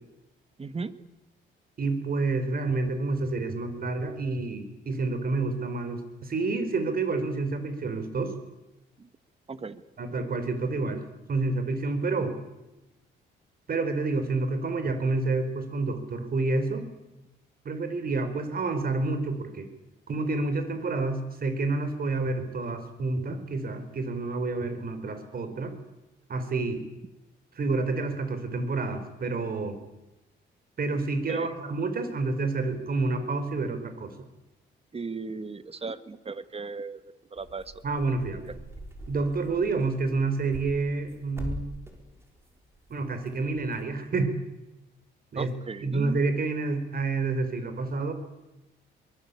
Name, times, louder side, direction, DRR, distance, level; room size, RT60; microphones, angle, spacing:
voice 1, 0.6-0.9 9.0-9.1 9.5-9.8 31.3-31.5 34.9-37.0 37.3-37.7 38.5-38.6 45.4-46.2, right 4 dB, 30° right, 12 dB, 1.8 m, -36 dB
voice 2, 1.8-8.3 10.0-12.4 13.7-16.9 17.6-19.7 20.1-25.7 26.3-26.8 27.5-29.8 30.8-34.1 37.8-38.4 39.1-41.7 42.9-44.3 45.3-45.5 45.8-48.1, right 3 dB, 50° right, 9 dB, 5.1 m, -29 dB
sound 1, 37.4-43.9, equal, 15° right, 5.7 m, -43 dB
23.5 x 23.0 x 8.8 m, 0.99 s
cardioid pair, 90°, 20 cm